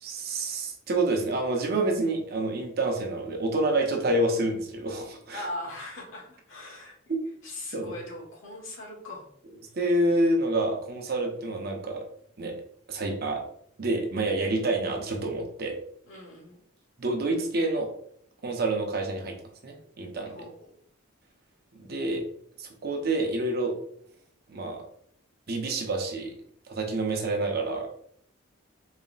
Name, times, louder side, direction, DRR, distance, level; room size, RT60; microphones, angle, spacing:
voice 1, 0.0-5.4 7.7-7.9 9.7-12.0 12.4-12.5 12.9-13.4 13.8-15.8 17.0-17.9 18.4-19.3 19.6-20.4 21.8-22.2 22.6-23.7 24.5-24.8 25.5-26.3 26.7-27.9, right 2 dB, 45° right, 2 dB, 0.7 m, -28 dB
voice 2, 5.3-7.0 7.4-9.3 16.1-16.6 20.3-20.5, left 1 dB, 70° left, -2 dB, 1.3 m, -40 dB
4.1 x 2.1 x 3.9 m, 0.65 s
head